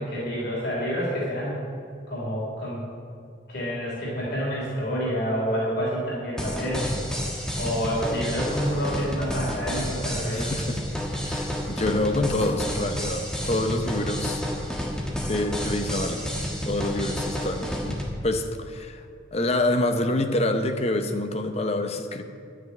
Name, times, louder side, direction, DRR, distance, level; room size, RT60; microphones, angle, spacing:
voice 1, 0.0-1.6 2.1-2.9 3.5-6.9 7.6-10.5, equal, 55° left, -5 dB, 3.2 m, -28 dB
sound 1, 6.4-18.1, equal, 5° left, 1.4 m, -30 dB
voice 2, 10.3-10.8 11.2-14.4 15.3-16.3 16.6-19.0 19.3-22.2, left 1 dB, 35° left, 6 dB, 0.8 m, -27 dB
11.0 x 6.3 x 9.2 m, 2.4 s
head